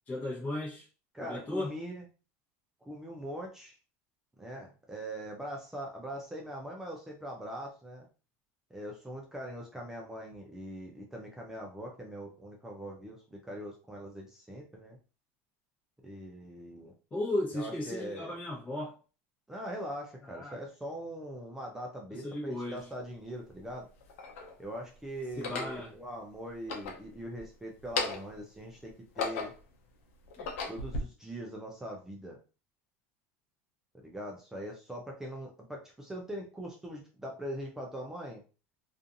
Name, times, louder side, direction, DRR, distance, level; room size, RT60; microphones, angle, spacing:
voice 1, 0.1-0.9 1.2-1.7 17.1-19.0 20.3-20.6 22.2-22.8 25.4-25.9 30.4-30.5, left 1 dB, 20° left, 1.0 m, -35 dB
voice 2, 1.1-2.1 2.8-3.8 4.4-8.1 8.7-15.0 16.0-16.9 17.5-18.4 19.5-23.9 24.6-29.5 30.7-32.4 33.9-38.4, right 1 dB, 5° right, 0.5 m, -42 dB
sound 1, 22.8-22.9 23.7-24.5 25.3-25.8 26.5-27.5 27.8-28.4 28.9-29.7 30.2-31.0, left 4 dB, 80° left, 0.6 m, -36 dB
2.5 x 2.4 x 2.6 m
supercardioid pair, 130°, 7 cm